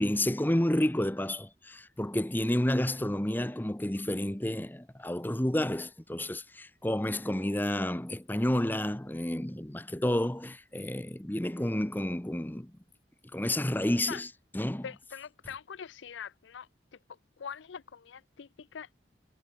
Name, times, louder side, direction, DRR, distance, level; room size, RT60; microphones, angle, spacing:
voice 1, 0.0-12.7 13.3-14.3 14.5-14.9, left 1 dB, 10° left, 0.8 m, -30 dB
voice 2, 14.8-16.7 17.4-18.9, left 7 dB, 85° left, 0.5 m, -43 dB
head